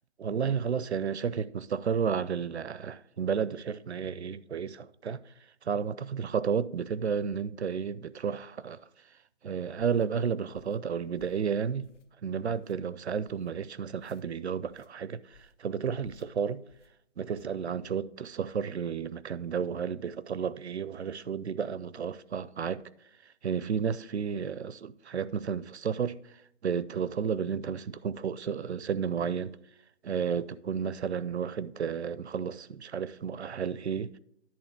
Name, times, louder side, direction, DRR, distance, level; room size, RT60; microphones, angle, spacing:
voice 1, 0.2-5.3 5.6-8.9 9.4-11.9 12.2-16.6 17.2-22.8 23.2-29.6 30.0-34.2, right 7 dB, 65° right, 0.5 m, -32 dB
sound 1, 9.8-10.1 10.5-10.8 11.2-11.5 11.8-12.2 12.5-12.8 13.2-13.5 14.0-14.2 14.7-14.9 15.3-15.6 16.0-16.3 16.7-16.9 17.3-17.6, left 5 dB, 80° left, 0.9 m, -59 dB
10.5 x 3.6 x 7.0 m
hypercardioid pair, 175°, 36 cm